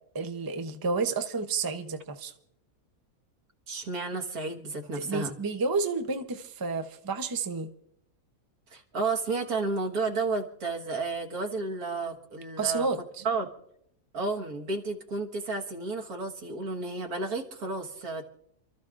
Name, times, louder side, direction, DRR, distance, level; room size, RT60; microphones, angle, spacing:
voice 1, 0.1-2.3 5.0-7.7 12.6-13.2, right 4 dB, 25° right, 7 dB, 0.5 m, -30 dB
voice 2, 3.7-5.3 8.7-12.9 13.2-13.5 14.1-18.2, right 3 dB, 90° right, 1 dB, 2.0 m, -32 dB
28.5 x 13.5 x 2.5 m, 0.75 s
omnidirectional pair, 1.5 m